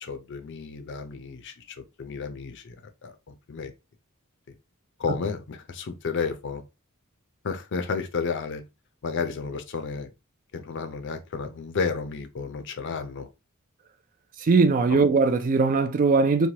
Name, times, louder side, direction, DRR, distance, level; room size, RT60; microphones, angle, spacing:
voice 1, 0.0-2.8 3.0-3.7 5.0-6.6 7.4-8.6 9.0-10.1 10.5-13.3 14.9-15.0, left 5 dB, 55° left, 0.5 m, -32 dB
voice 2, 14.4-16.5, right 4 dB, 40° right, 0.3 m, -20 dB
3.1 x 2.2 x 2.7 m
head